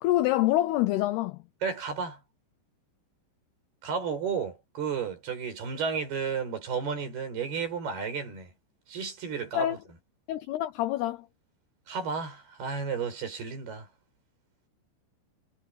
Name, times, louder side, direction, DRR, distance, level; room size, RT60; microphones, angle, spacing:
voice 1, 0.0-1.4 9.5-9.8 10.3-11.3, left 15 dB, 85° left, 2.3 m, -26 dB
voice 2, 1.6-2.2 3.8-8.5 8.9-9.8 11.9-13.9, right 6 dB, 55° right, 8.0 m, -32 dB
omnidirectional pair, 5.6 m